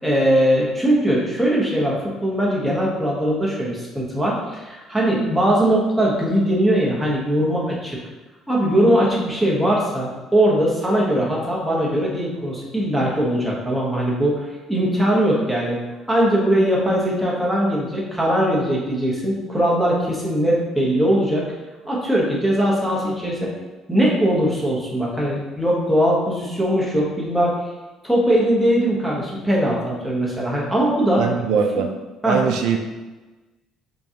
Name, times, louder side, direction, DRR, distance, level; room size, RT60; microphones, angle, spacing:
voice 1, 0.0-8.0 8.5-15.8 16.1-21.5 21.8-23.5 23.9-27.6 28.0-31.2 31.8-31.9 32.2-32.5, equal, 5° right, -5 dB, 0.9 m, -20 dB
voice 2, 31.2-31.9 32.2-32.8, right 6 dB, 80° right, 4 dB, 0.3 m, -21 dB
5.1 x 2.3 x 2.8 m, 1.2 s
cardioid pair, 130°, 0 cm